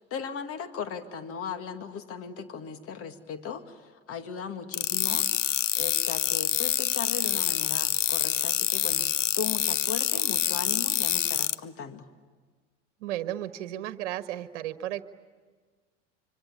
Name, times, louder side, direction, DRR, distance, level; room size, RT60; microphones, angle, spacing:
voice 1, 0.0-3.8 4.1-5.3 5.8-9.1 9.3-12.1, left 7 dB, 40° left, 8 dB, 2.2 m, -37 dB
sound 1, 4.7-11.5, left 12 dB, 80° left, 0.8 m, -26 dB
voice 2, 13.0-15.0, right 13 dB, 65° right, 11 dB, 1.4 m, -34 dB
26.0 x 25.5 x 8.6 m, 1.5 s
hypercardioid pair, 90°, 37 cm